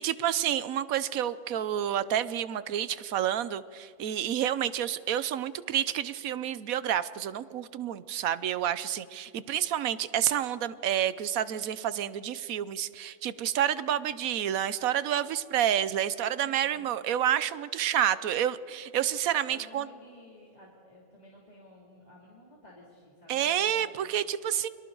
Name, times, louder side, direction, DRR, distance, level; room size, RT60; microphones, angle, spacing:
voice 1, 0.0-19.9 23.3-24.7, right 10 dB, 90° right, 16 dB, 1.2 m, -29 dB
voice 2, 16.4-16.9 19.5-24.0, left 1 dB, 30° left, -5 dB, 3.0 m, -53 dB
29.5 x 23.5 x 3.9 m, 2.7 s
omnidirectional pair, 1.4 m